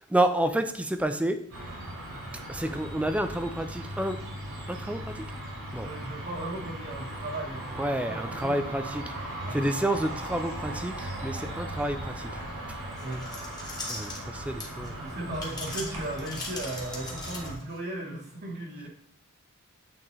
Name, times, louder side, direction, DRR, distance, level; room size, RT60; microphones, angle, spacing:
voice 1, 0.1-1.4 2.5-4.2 4.7-5.2 5.7-5.9 7.8-9.0 9.5-12.3 13.9-14.9, right 1 dB, 5° right, 8 dB, 0.4 m, -29 dB
sound 1, 1.5-17.5, right 1 dB, 80° right, 2.3 m, -38 dB
voice 2, 5.8-9.2 9.5-9.7 13.0-13.3 15.0-18.9, right 2 dB, 45° right, -3 dB, 1.1 m, -37 dB
sound 2, 13.0-14.9 15.3-17.8, left 3 dB, 20° left, 1.4 m, -39 dB
8.6 x 3.7 x 3.1 m, 0.68 s
head